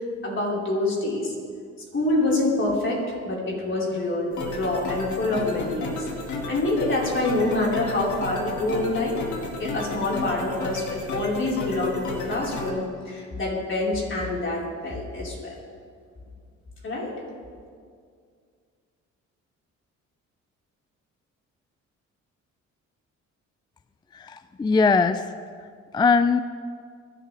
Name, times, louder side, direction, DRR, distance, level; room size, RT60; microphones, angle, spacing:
voice 1, 0.2-1.3 1.9-6.1 6.5-9.2 9.6-15.6 16.8-17.1, left 2 dB, 40° left, -4 dB, 4.6 m, -26 dB
sound 1, 4.3-12.7, left 3 dB, 70° left, 2.4 m, -33 dB
voice 2, 24.1-25.3 25.9-26.4, left 4 dB, 15° left, 13 dB, 0.3 m, -20 dB
22.5 x 12.0 x 3.4 m, 2.1 s
cardioid pair, 90°, 30 cm